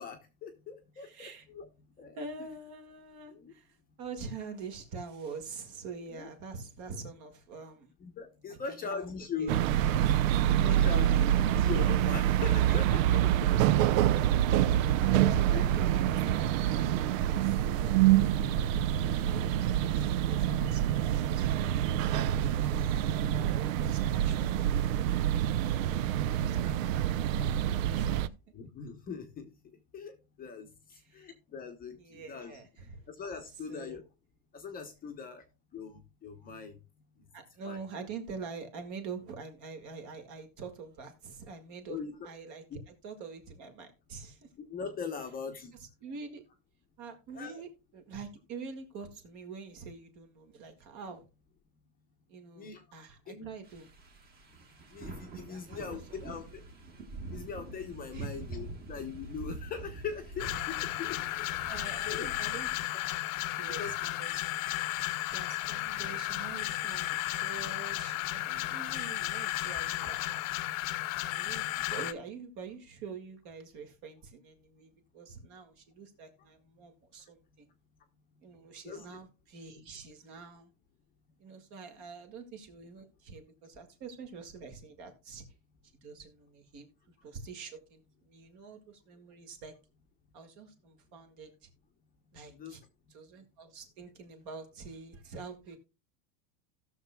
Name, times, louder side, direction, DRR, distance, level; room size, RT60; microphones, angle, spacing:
voice 1, 0.0-1.7 2.0-2.2 3.3-3.5 6.1-6.3 8.0-9.7 10.6-13.6 14.0-14.8 15.2-15.6 25.9-26.1 26.7-26.8 28.5-29.5 29.9-30.7 31.1-34.0 34.5-35.4 35.7-36.8 37.6-37.8 41.9-42.3 42.7-42.8 44.7-45.7 47.3-47.6 52.6-52.8 53.3-53.5 54.9-56.6 57.3-61.6 62.1-62.3 63.8-64.0 78.8-79.1 92.5-92.8, left 6 dB, 20° left, 0.8 m, -41 dB
voice 2, 1.0-1.5 2.2-7.9 8.5-9.1 9.4-9.5 10.7-11.0 13.5-18.0 18.6-22.8 23.3-25.1 27.9-28.3 30.9-31.3 32.0-33.0 33.7-34.0 37.3-42.0 42.2-44.5 46.0-46.4 47.0-51.3 52.3-53.9 55.5-56.4 58.1-58.4 61.1-61.2 61.5-62.9 63.5-64.6 65.0-70.4 71.3-77.7 78.4-80.7 81.4-85.5 86.0-86.9 87.2-89.7 90.3-91.7 92.3-92.8 93.1-95.8, right 5 dB, 45° right, 1.9 m, -46 dB
sound 1, 9.5-28.3, right 11 dB, 70° right, 0.6 m, -26 dB
sound 2, 53.6-62.9, right 2 dB, 20° right, 1.6 m, -46 dB
sound 3, 60.4-72.1, left 16 dB, 70° left, 0.9 m, -34 dB
17.0 x 6.5 x 2.2 m
supercardioid pair, 155°, 42 cm